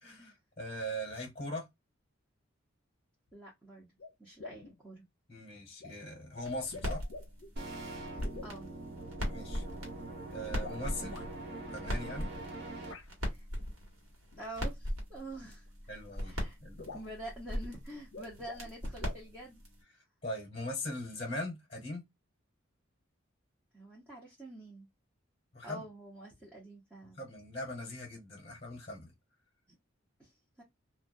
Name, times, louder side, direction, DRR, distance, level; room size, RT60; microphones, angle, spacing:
voice 1, 0.0-1.6 5.3-7.0 9.2-9.6 10.3-11.2 11.7-12.3 15.9-16.3 16.6-17.0 20.2-22.0 25.5-25.8 27.2-29.1, left 1 dB, 30° left, 0.9 m, -40 dB
sound 1, 3.3-3.4 4.0-4.1 4.4-4.8 5.8-5.9 6.6-7.5 8.2-8.6 10.5-11.3 12.9-13.1 14.3-14.5 15.7-15.8 16.1-16.2 16.4-16.5 16.8-17.2 18.0-18.7 19.0-19.2, left 3 dB, 70° left, 0.5 m, -47 dB
voice 2, 3.3-3.9 4.2-5.0 8.1-8.7 13.3-13.5 14.4-15.7 16.2-16.6 16.8-19.6 23.7-24.9 25.6-27.2 29.7-29.8 30.2-30.6, right 1 dB, 10° right, 0.7 m, -47 dB
sound 2, 6.4-19.8, equal, 85° right, 1.2 m, -40 dB
sound 3, 7.6-12.9, right 2 dB, 55° right, 0.6 m, -43 dB
2.2 x 2.2 x 2.5 m
head